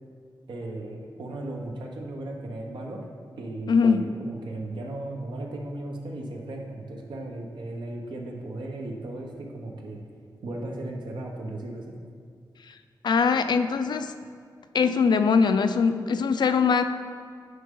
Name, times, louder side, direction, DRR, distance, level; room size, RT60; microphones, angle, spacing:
voice 1, 0.5-3.0 3.4-10.0 10.4-12.0, right 2 dB, 80° right, 0 dB, 1.1 m, -36 dB
voice 2, 3.7-4.1 12.7-12.8 13.0-14.1 14.7-16.8, left 5 dB, 70° left, 9 dB, 0.4 m, -22 dB
9.4 x 5.5 x 3.8 m, 2.2 s
wide cardioid pair, 105°, 8 cm